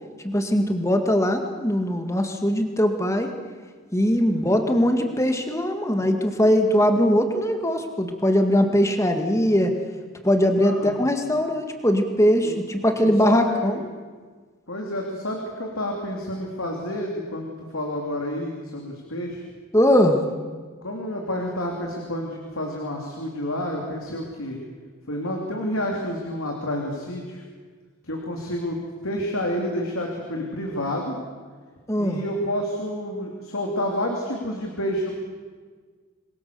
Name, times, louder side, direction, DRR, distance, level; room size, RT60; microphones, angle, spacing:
voice 1, 0.2-3.3 3.9-9.7 10.2-13.8 19.7-20.2 31.9-32.2, equal, 15° left, 5 dB, 1.9 m, -21 dB
voice 2, 4.3-4.7 10.5-11.0 12.4-12.5 13.0-13.8 14.7-19.4 20.8-24.6 25.1-27.4 28.0-31.2 32.0-35.1, left 1 dB, 85° left, 0 dB, 3.4 m, -29 dB
27.0 x 22.0 x 7.0 m, 1.5 s
head